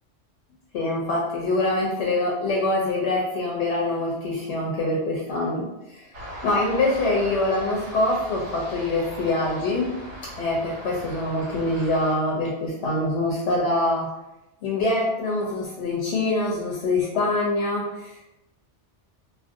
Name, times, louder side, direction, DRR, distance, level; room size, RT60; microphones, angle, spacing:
voice 1, 0.7-6.1 6.4-10.0 10.4-14.1 14.6-18.4, left 2 dB, 75° left, -3 dB, 0.8 m, -24 dB
sound 1, 6.1-12.2, equal, 75° right, 1.3 m, -39 dB
2.7 x 2.4 x 2.6 m, 0.93 s
omnidirectional pair, 1.2 m